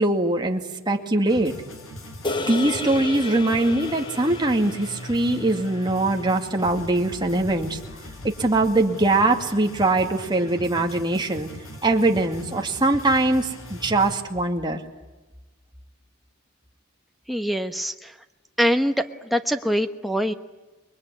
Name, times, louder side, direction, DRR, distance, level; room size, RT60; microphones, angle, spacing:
voice 1, 0.0-1.5 2.5-7.8 8.4-11.5 11.8-14.8, right 2 dB, 20° right, 3 dB, 2.2 m, -22 dB
sound 1, 1.3-14.2, equal, 75° left, 5.1 m, -40 dB
sound 2, 2.2-6.7, left 3 dB, 25° left, 1.5 m, -34 dB
sound 3, 6.6-8.9, left 2 dB, 55° left, 5.6 m, -46 dB
voice 2, 17.3-18.1 18.6-20.3, equal, ahead, 6 dB, 1.1 m, -24 dB
27.5 x 22.0 x 9.7 m, 1.1 s
head